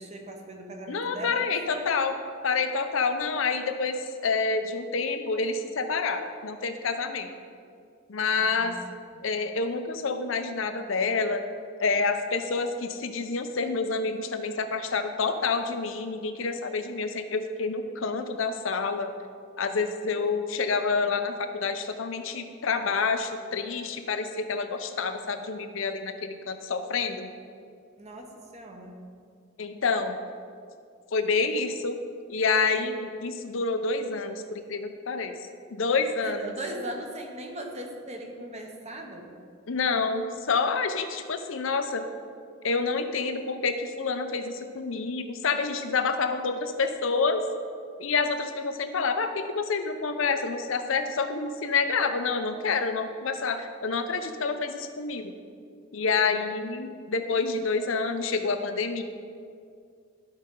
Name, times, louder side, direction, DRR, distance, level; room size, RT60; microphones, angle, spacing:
voice 1, 0.0-1.9 8.4-8.7 9.1-9.3 28.0-29.0 36.2-39.4, right 1 dB, 35° right, 2 dB, 1.0 m, -39 dB
voice 2, 0.9-2.2 2.4-7.3 8.1-8.8 9.2-11.4 11.8-19.1 19.6-27.3 29.6-30.2 31.1-32.0 32.3-35.4 35.7-36.5 39.7-42.0 42.6-47.4 48.0-55.3 55.9-59.0, left 4 dB, 70° left, 7 dB, 0.6 m, -28 dB
12.0 x 5.3 x 3.8 m, 2.3 s
head